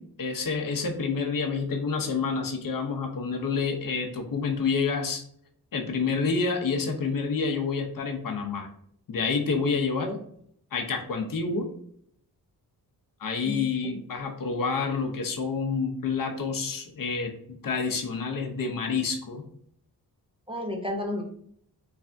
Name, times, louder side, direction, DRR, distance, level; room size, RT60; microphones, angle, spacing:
voice 1, 0.0-5.2 5.7-8.7 9.1-10.1 10.7-11.7 13.2-17.3 17.6-19.4, left 5 dB, 60° left, 3 dB, 0.7 m, -28 dB
voice 2, 13.4-14.0 20.5-21.2, left 1 dB, 15° right, 0 dB, 0.5 m, -32 dB
3.4 x 3.3 x 2.5 m, 0.63 s
wide cardioid pair, 140°, 38 cm